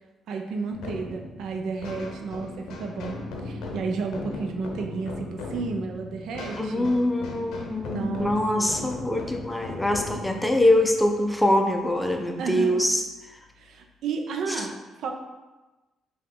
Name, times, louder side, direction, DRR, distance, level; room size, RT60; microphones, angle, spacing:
voice 1, 0.3-6.9 7.9-8.7 12.4-12.8 13.6-15.1, right 4 dB, 75° right, 3 dB, 0.5 m, -32 dB
sound 1, 0.7-12.1, left 2 dB, 85° left, 0.6 m, -38 dB
voice 2, 6.6-13.0 14.6-14.7, left 1 dB, 10° left, 4 dB, 0.5 m, -23 dB
4.8 x 2.3 x 3.7 m, 1.1 s
cardioid pair, 90°, 0 cm